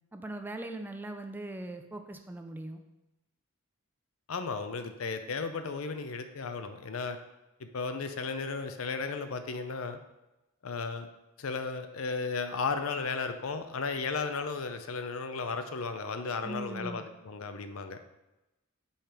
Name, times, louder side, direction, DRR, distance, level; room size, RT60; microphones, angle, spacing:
voice 1, 0.1-2.8 16.4-17.0, right 1 dB, 10° right, 5 dB, 0.4 m, -40 dB
voice 2, 4.3-7.2 7.6-10.0 10.6-11.1 11.4-18.0, left 4 dB, 75° left, 8 dB, 0.6 m, -34 dB
5.6 x 5.0 x 4.4 m, 1.0 s
head